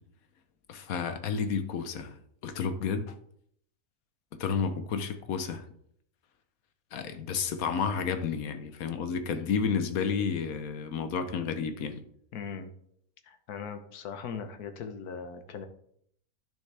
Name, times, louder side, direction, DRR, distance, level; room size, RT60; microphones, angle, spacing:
voice 1, 0.7-2.2 2.4-3.2 4.3-5.6 6.9-12.0, left 6 dB, 75° left, 1.3 m, -31 dB
voice 2, 12.3-12.7 13.2-15.7, left 6 dB, 90° left, 1.5 m, -39 dB
10.5 x 6.5 x 3.4 m
omnidirectional pair, 1.6 m